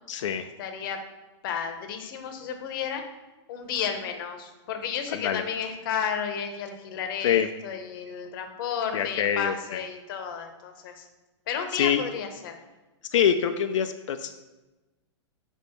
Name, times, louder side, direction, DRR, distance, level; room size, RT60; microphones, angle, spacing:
voice 1, 0.1-0.5 5.1-5.4 7.2-7.5 8.9-9.8 11.7-12.0 13.1-14.3, left 8 dB, 85° left, 7 dB, 0.4 m, -25 dB
voice 2, 0.6-1.0 1.4-3.0 3.5-11.1 11.5-12.6, left 7 dB, 45° left, 6 dB, 0.8 m, -32 dB
5.0 x 3.5 x 5.6 m, 1.1 s
hypercardioid pair, 155°, 16 cm